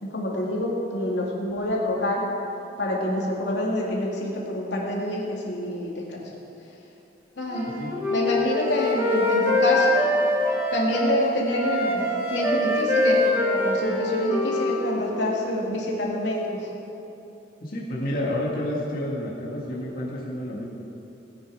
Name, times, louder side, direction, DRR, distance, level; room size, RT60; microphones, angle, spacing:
voice 1, 0.0-2.2 2.8-6.2 7.4-7.8 8.1-10.0 10.7-16.7, left 1 dB, 85° left, -3 dB, 2.6 m, -27 dB
Wind instrument woodwind instrument, 7.5-11.2 11.5-15.1, left 1 dB, 15° right, 2.0 m, -24 dB
voice 2, 17.6-20.7, left 1 dB, 55° left, -5 dB, 2.0 m, -29 dB
18.0 x 9.3 x 4.9 m, 3.0 s
head